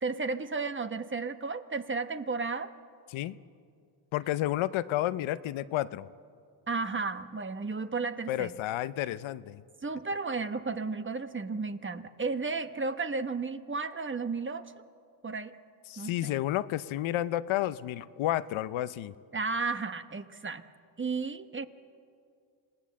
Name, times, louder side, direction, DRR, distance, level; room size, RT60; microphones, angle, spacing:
voice 1, 0.0-2.7 6.7-8.5 9.8-14.7 15.2-15.5 16.0-16.1 19.3-20.6 21.0-21.7, right 4 dB, 25° right, 10 dB, 1.1 m, -33 dB
voice 2, 4.1-6.1 8.3-9.6 15.9-19.1, left 14 dB, 75° left, 15 dB, 0.7 m, -31 dB
26.5 x 18.0 x 7.5 m, 2.3 s
cardioid pair, 80°, 47 cm